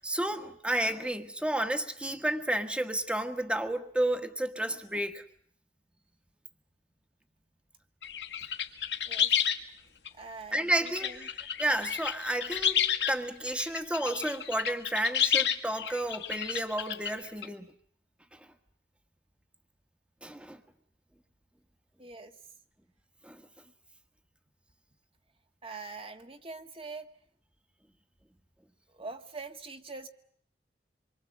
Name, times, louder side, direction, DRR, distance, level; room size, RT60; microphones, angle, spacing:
voice 1, 0.0-5.2 10.5-11.3 11.6-17.7 18.3-18.5 20.2-20.6 23.2-23.4, right 1 dB, 5° right, 7 dB, 1.5 m, -31 dB
bruneau dunes bird, 8.0-9.6 10.0-10.1 10.7-13.1 13.5-17.4, left 8 dB, 70° left, 1.7 m, -30 dB
voice 2, 10.1-11.3 22.0-22.4 25.6-27.1 28.9-30.1, right 3 dB, 35° right, 6 dB, 1.6 m, -44 dB
26.0 x 23.5 x 7.5 m, 0.63 s
head